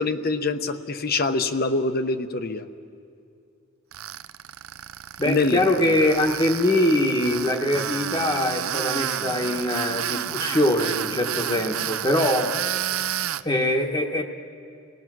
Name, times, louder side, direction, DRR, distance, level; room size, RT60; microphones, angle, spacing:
voice 1, 0.0-2.7 5.2-5.6 5.9-6.0, left 3 dB, 45° left, 9 dB, 0.9 m, -25 dB
Tools, 3.9-13.4, right 10 dB, 75° right, 0.5 m, -30 dB
voice 2, 5.2-12.5 13.4-14.2, left 1 dB, 20° left, 1 dB, 1.1 m, -23 dB
27.5 x 18.5 x 6.2 m, 2.4 s
head